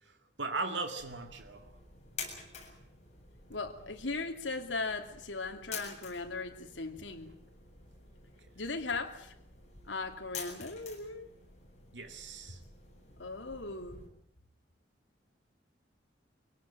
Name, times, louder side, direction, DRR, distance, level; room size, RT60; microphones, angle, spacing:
voice 1, 0.0-1.7 11.9-12.6, right 3 dB, 75° right, 6 dB, 2.2 m, -38 dB
sound 1, 1.0-14.1, left 5 dB, 40° left, 7.6 m, -49 dB
voice 2, 3.5-7.3 8.6-9.3 9.8-11.3 12.5-12.6 13.2-14.0, left 3 dB, 85° left, 4 dB, 2.8 m, -38 dB
24.5 x 18.0 x 9.0 m, 0.75 s
head